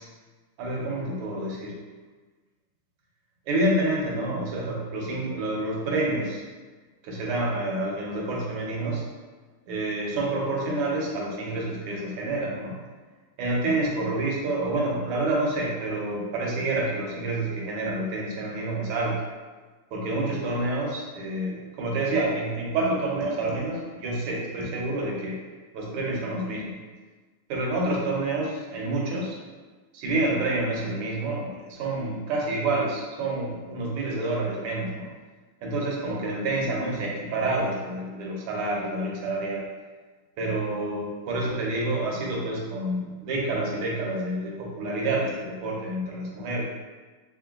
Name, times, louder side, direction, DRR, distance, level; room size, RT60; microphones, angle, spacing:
voice 1, 0.6-1.8 3.5-6.4 7.0-9.1 9.7-12.7 13.4-19.2 19.9-25.4 25.7-26.7 27.5-29.4 29.9-35.1 35.6-39.6 40.4-46.6, right 2 dB, 90° right, -3 dB, 1.7 m, -28 dB
3.8 x 3.7 x 2.3 m, 1.3 s
omnidirectional pair, 2.4 m